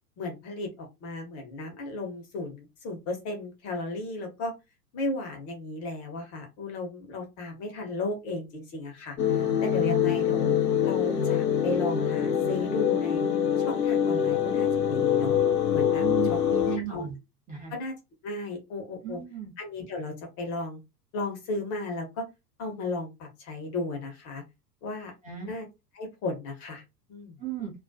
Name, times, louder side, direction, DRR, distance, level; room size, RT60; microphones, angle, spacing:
voice 1, 0.2-4.5 4.9-10.5 10.8-13.3 13.6-15.4 15.7-16.0 16.5-17.1 17.7-17.9 18.2-19.2 19.6-20.8 21.1-22.3 22.6-24.4 24.8-25.1 25.4-25.7 26.0-26.8 27.1-27.4, left 2 dB, 30° left, 3 dB, 0.7 m, -35 dB
Residential School Underscore, 9.2-16.8, left 8 dB, 75° left, 0.8 m, -25 dB
voice 2, 16.0-17.2 17.5-17.7 19.0-19.5 25.2-25.5 27.4-27.7, right 9 dB, 15° right, -1 dB, 0.7 m, -35 dB
2.2 x 2.1 x 2.6 m, 0.24 s
figure-of-eight pair, 90°, 49 cm